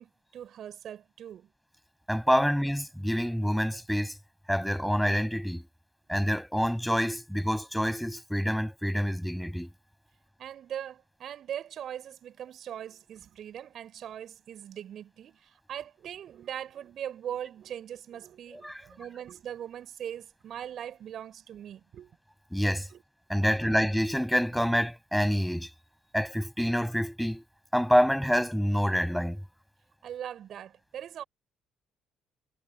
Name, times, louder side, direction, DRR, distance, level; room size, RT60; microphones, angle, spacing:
voice 1, 0.0-1.5 10.4-22.1 22.9-23.0 23.5-23.7 30.0-31.2, right 10 dB, 55° right, 4.8 m, -41 dB
voice 2, 2.1-4.2 4.5-5.7 6.1-9.7 18.5-18.8 22.5-22.9 23.3-25.7 26.1-27.4 27.7-29.4, equal, ahead, 7.4 m, -27 dB
hypercardioid pair, 50°, 0 cm